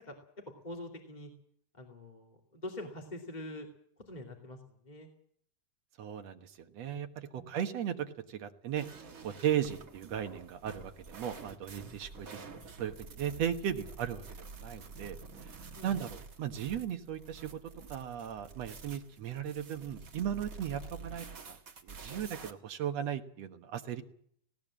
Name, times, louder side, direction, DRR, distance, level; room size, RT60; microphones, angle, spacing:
voice 1, 0.6-1.3 1.8-3.7 4.1-4.6 4.8-5.1 7.3-7.5 15.7-16.0, left 1 dB, 15° left, 1 dB, 2.2 m, -44 dB
voice 2, 6.0-8.9 9.2-12.4 12.8-17.5 17.9-21.6 21.8-24.0, right 9 dB, 60° right, 6 dB, 2.4 m, -36 dB
sound 1, 8.7-22.5, right 4 dB, 45° right, 1.2 m, -49 dB
19.5 x 18.0 x 7.5 m, 0.64 s
omnidirectional pair, 3.6 m